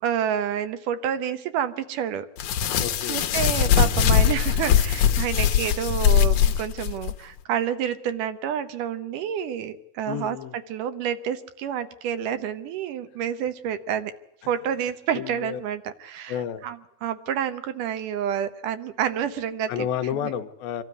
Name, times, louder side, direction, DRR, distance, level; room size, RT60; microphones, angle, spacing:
voice 1, 0.0-2.3 2.5-2.8 3.1-10.4 10.7-14.1 14.5-16.4 16.6-19.9, right 9 dB, 70° right, 11 dB, 2.2 m, -29 dB
sound 1, 2.4-7.1, left 9 dB, 65° left, 2.1 m, -21 dB
voice 2, 2.8-3.2 10.1-10.6 14.4-14.5 15.1-15.6 16.3-16.6 19.7-20.8, left 9 dB, 85° left, 8 dB, 2.9 m, -31 dB
25.0 x 13.0 x 9.5 m, 0.82 s
omnidirectional pair, 4.2 m